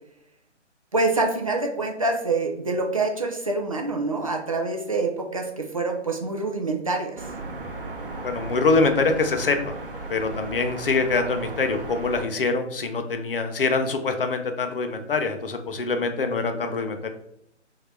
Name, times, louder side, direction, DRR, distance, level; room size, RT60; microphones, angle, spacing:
voice 1, 0.9-7.2, right 3 dB, 30° right, 3 dB, 0.4 m, -26 dB
City Trafic Tram Cars Rotterdam, 7.2-12.3, right 3 dB, 45° right, 0.8 m, -35 dB
voice 2, 8.2-9.7 10.1-17.1, left 3 dB, 50° left, 6 dB, 0.6 m, -24 dB
3.7 x 2.7 x 4.4 m, 0.74 s
figure-of-eight pair, 140°, 36 cm